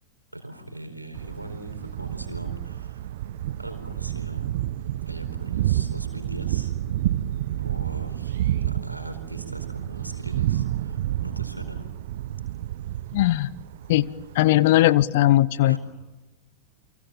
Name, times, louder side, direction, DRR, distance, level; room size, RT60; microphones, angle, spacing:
voice 1, 0.3-3.1 3.6-4.5 5.1-6.7 7.6-11.9 15.6-15.8, right 1 dB, 85° right, 6 dB, 4.5 m, -40 dB
Thunder, 1.1-14.5, right 13 dB, 55° right, 0.8 m, -29 dB
voice 2, 13.1-13.5 13.9-14.1 14.3-15.8, left 15 dB, 50° left, 20 dB, 0.9 m, -19 dB
30.0 x 24.0 x 7.3 m, 1.1 s
figure-of-eight pair, 90°, 0 cm